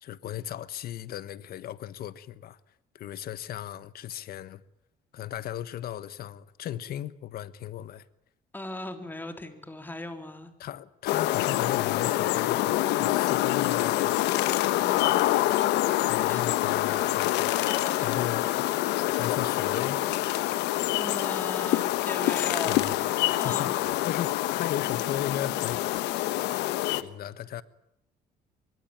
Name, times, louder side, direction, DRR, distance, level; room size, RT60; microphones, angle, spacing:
voice 1, 0.0-2.6 2.9-4.6 5.1-8.0 10.6-14.2 16.0-17.5 18.0-20.1 22.6-23.0 23.3-25.8 27.0-27.6, left 11 dB, 65° left, 1.4 m, -36 dB
voice 2, 8.5-10.5 14.8-15.3 16.3-16.6 17.8-18.1 21.0-22.9 23.4-23.8, left 2 dB, 10° left, 3.6 m, -38 dB
sound 1, 11.1-27.0, left 15 dB, 85° left, 1.2 m, -26 dB
sound 2, 15.0-15.4 15.6-17.4 17.6-19.4 19.6-20.9, left 6 dB, 40° left, 2.8 m, -47 dB
24.5 x 23.5 x 9.0 m
cardioid pair, 110°, 17 cm